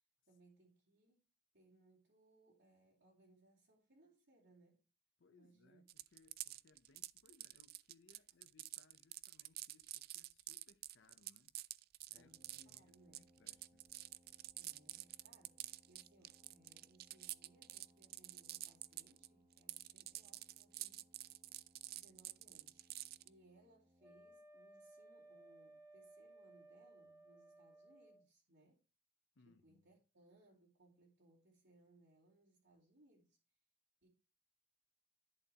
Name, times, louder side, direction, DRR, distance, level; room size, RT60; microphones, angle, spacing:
voice 1, 0.3-1.2 1.5-4.9 5.3-5.8 12.1-13.2 14.5-21.1 21.9-22.9 23.2-28.8 29.4-33.4 34.0-34.1, right 2 dB, 70° right, 2.8 m, -69 dB
voice 2, 5.2-11.5 12.1-13.8 29.4-30.0, left 3 dB, 75° left, 0.7 m, -70 dB
sound 1, 5.9-19.3 19.5-23.3, right 16 dB, 55° right, 0.4 m, -49 dB
Brass instrument, 12.1-24.4, equal, 35° right, 1.3 m, -72 dB
Wind instrument woodwind instrument, 24.0-28.3, right 2 dB, 15° right, 0.8 m, -61 dB
11.0 x 6.7 x 2.9 m
head